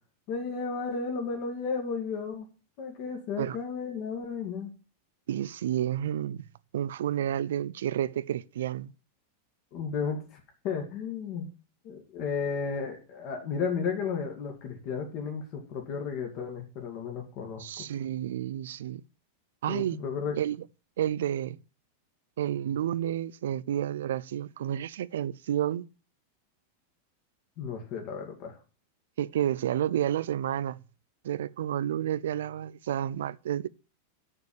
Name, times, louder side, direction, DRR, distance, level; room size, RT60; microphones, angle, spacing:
voice 1, 0.3-2.4 2.8-4.7 9.7-10.2 10.6-11.5 11.8-17.8 19.7-20.4 27.6-28.6, left 5 dB, 45° left, 2.2 m, -33 dB
voice 2, 5.3-6.4 6.7-8.9 17.6-19.0 19.6-20.0 20.4-20.6 21.0-21.6 22.4-25.9 29.2-30.8 31.2-33.7, right 11 dB, 85° right, 0.5 m, -30 dB
6.8 x 6.5 x 7.1 m
supercardioid pair, 145°, 0 cm